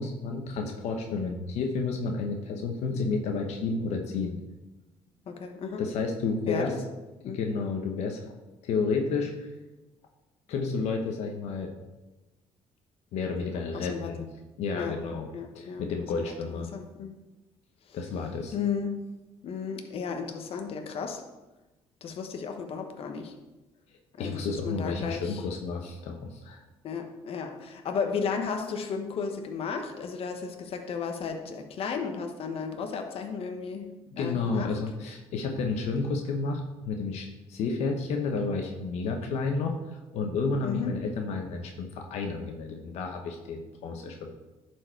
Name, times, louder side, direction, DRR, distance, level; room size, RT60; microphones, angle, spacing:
voice 1, 0.0-4.4 5.8-6.7 7.2-8.2 8.6-9.3 10.5-11.7 13.1-14.3 14.6-15.3 15.5-16.7 17.9-18.5 24.2-26.6 34.1-44.3, left 4 dB, 80° left, 3 dB, 1.0 m, -31 dB
voice 2, 5.3-5.8 6.5-6.8 7.2-7.4 13.7-14.1 14.7-15.0 15.3-17.1 17.9-18.0 18.5-19.0 19.4-21.2 22.0-23.3 24.2-25.4 26.8-33.9 34.2-34.7 40.6-40.9, left 6 dB, 60° left, 5 dB, 1.1 m, -34 dB
11.0 x 4.7 x 4.5 m, 1.1 s
cardioid pair, 105°, 11 cm